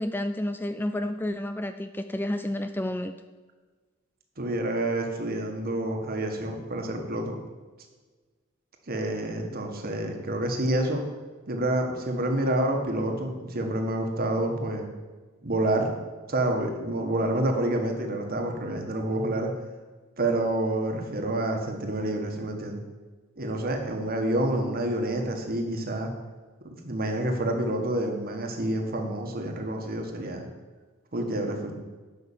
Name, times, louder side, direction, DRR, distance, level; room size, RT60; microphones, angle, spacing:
voice 1, 0.0-3.1, left 1 dB, 10° left, 9 dB, 0.3 m, -30 dB
voice 2, 4.4-7.4 8.9-11.0 11.5-14.9 15.4-15.9 16.3-19.5 20.2-22.8 23.4-26.1 26.7-30.5 31.1-31.7, right 1 dB, 45° right, 3 dB, 1.6 m, -28 dB
11.0 x 5.9 x 7.4 m, 1.3 s
head